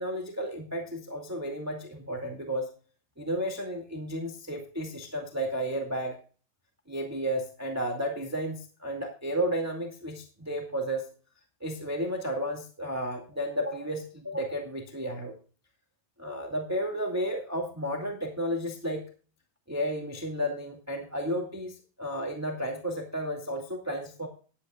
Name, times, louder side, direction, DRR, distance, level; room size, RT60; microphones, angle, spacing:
voice 1, 0.0-2.7 3.2-6.2 6.9-11.0 11.6-15.3 16.2-19.0 19.7-24.3, equal, 10° right, 1 dB, 1.1 m, -32 dB
17.0 x 11.5 x 2.4 m, 0.39 s
omnidirectional pair, 4.0 m